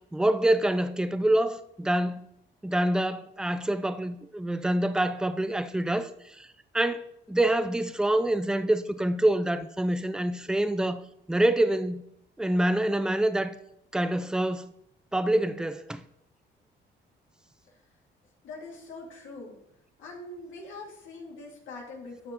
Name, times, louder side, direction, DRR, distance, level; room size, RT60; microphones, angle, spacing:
voice 1, 0.1-2.3 2.6-6.1 6.4-6.5 6.7-11.0 11.3-12.0 12.4-13.6 13.9-14.7 15.1-16.0, right 1 dB, 5° right, 0.5 m, -26 dB
voice 2, 18.4-19.6 20.0-22.3, left 2 dB, 80° left, 2.3 m, -43 dB
12.5 x 5.9 x 3.0 m
cardioid pair, 90°, 20 cm